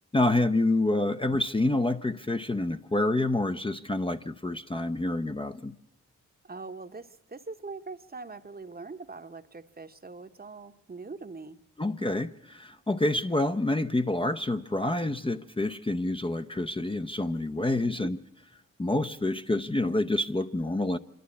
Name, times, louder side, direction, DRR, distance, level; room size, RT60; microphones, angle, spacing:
voice 1, 0.1-5.7 11.8-18.2 18.8-21.0, left 2 dB, 15° left, 6 dB, 0.7 m, -27 dB
voice 2, 6.4-11.6 17.6-18.1, right 3 dB, 30° right, 9 dB, 1.0 m, -42 dB
26.0 x 12.0 x 8.5 m, 0.89 s
supercardioid pair, 50°, 32 cm